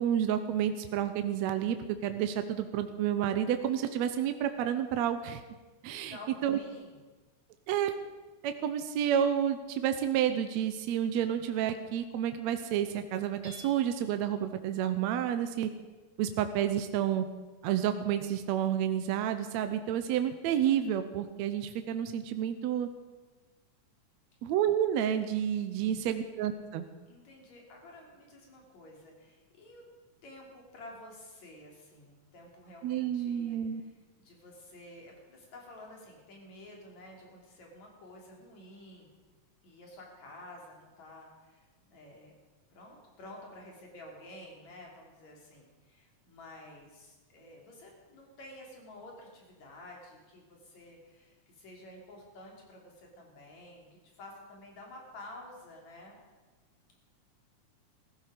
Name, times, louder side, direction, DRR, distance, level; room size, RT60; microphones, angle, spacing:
voice 1, 0.0-5.4 5.8-6.2 6.4-6.6 7.7-8.0 8.4-15.7 16.2-17.3 17.6-22.9 24.4-26.9 32.8-33.8, right 10 dB, 75° right, 8 dB, 1.9 m, -30 dB
voice 2, 6.1-7.0 27.1-29.9 30.2-33.9 34.2-39.1 39.6-42.3 42.7-53.9 54.1-56.2, left 1 dB, 70° left, -1 dB, 4.3 m, -51 dB
Hammer / Chink clink, 13.4-14.2, left 1 dB, 60° right, 3.8 m, -51 dB
15.5 x 14.5 x 5.0 m, 1.3 s
omnidirectional pair, 3.3 m